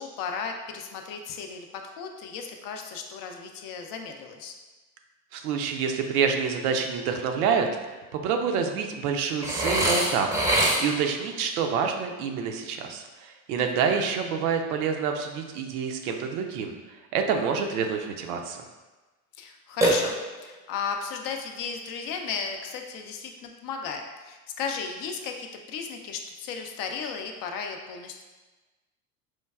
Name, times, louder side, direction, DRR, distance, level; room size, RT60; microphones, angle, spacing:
voice 1, 0.0-4.5 13.6-13.9 19.4-20.2 20.4-28.2, left 6 dB, 50° left, 4 dB, 0.5 m, -35 dB
voice 2, 5.3-7.7 8.1-10.5 10.8-16.8 17.1-18.6, right 6 dB, 70° right, 4 dB, 0.6 m, -27 dB
Burping eructation, 9.4-11.1 19.8-20.6, right 1 dB, 5° right, 0.6 m, -24 dB
4.5 x 2.2 x 2.3 m, 1.2 s
hypercardioid pair, 80°, 46 cm